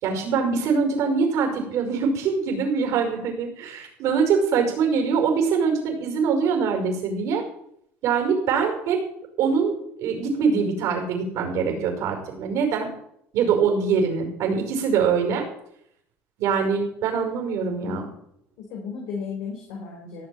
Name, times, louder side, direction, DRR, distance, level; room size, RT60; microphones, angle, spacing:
voice 1, 0.0-7.4 8.0-9.0 9.4-12.9 13.3-15.4 16.4-18.1, right 5 dB, 70° right, 2 dB, 5.6 m, -23 dB
voice 2, 11.6-12.0 17.8-18.1 18.6-20.3, left 5 dB, 75° left, 0 dB, 4.2 m, -35 dB
17.5 x 7.1 x 7.8 m, 0.72 s
supercardioid pair, 105°, 5 cm